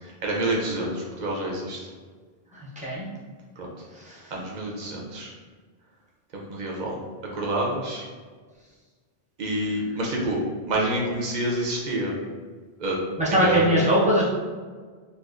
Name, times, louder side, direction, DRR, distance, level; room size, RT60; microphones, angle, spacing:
voice 1, 0.0-1.8 3.6-3.7 4.3-5.3 6.3-7.0 7.3-8.0 9.4-10.4 10.7-12.1 12.8-13.0 13.3-13.7, right 1 dB, 50° right, -2 dB, 0.7 m, -27 dB
voice 2, 2.5-3.1 3.9-4.3 13.2-14.2, equal, 10° right, -7 dB, 0.7 m, -22 dB
4.1 x 2.5 x 2.4 m, 1.5 s
omnidirectional pair, 1.1 m